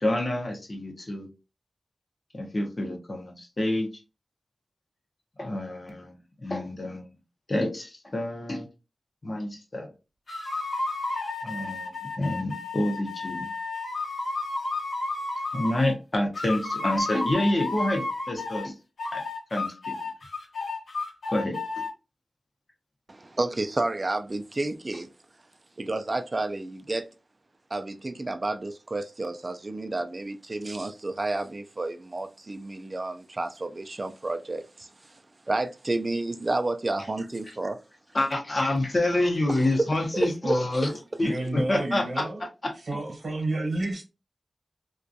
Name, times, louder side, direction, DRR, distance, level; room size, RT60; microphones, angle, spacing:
voice 1, 0.0-1.3 2.3-3.9 5.4-7.1 7.5-8.7 9.2-9.9 11.4-13.5 15.5-18.7 19.1-19.2 19.5-19.9 21.3-21.8 38.1-40.9 41.2-42.2 42.6-42.7, left 1 dB, 40° left, 0.7 m, -28 dB
sound 1, 10.3-16.0 16.3-18.7 19.0-21.9, left 3 dB, 85° left, 0.8 m, -32 dB
voice 2, 23.1-25.1 25.8-27.1 27.7-35.2 35.5-37.8 39.5-40.6, right 2 dB, 35° right, 0.3 m, -30 dB
voice 3, 41.2-42.4 42.8-44.0, right 2 dB, 65° right, 0.9 m, -30 dB
2.4 x 2.2 x 2.6 m
wide cardioid pair, 105°, 0 cm